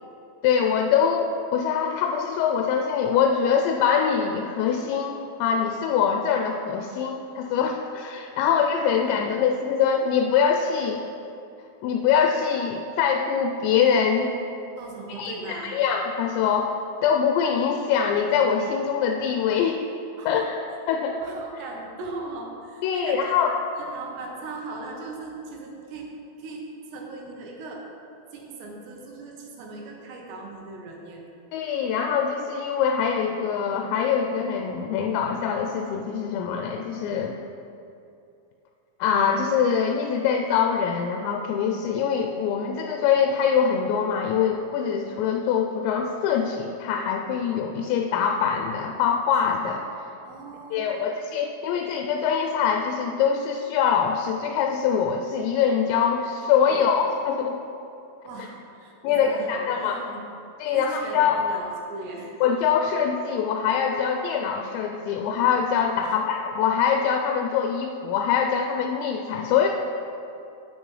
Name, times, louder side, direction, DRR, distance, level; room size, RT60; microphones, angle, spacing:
voice 1, 0.4-11.0 11.8-14.3 15.2-19.8 20.3-20.6 20.9-21.2 22.8-23.5 31.5-37.4 39.0-49.9 50.7-57.6 59.0-60.0 60.6-61.4 62.4-69.7, left 7 dB, 85° left, 3 dB, 2.8 m, -24 dB
voice 2, 14.8-15.8 20.2-20.5 21.2-26.1 26.4-27.8 28.3-31.2 50.2-51.1 56.6-56.9 58.2-60.2 60.6-62.4 66.0-66.2, right 3 dB, 75° right, 0 dB, 3.1 m, -39 dB
8.9 x 8.7 x 3.2 m, 2.7 s
omnidirectional pair, 5.1 m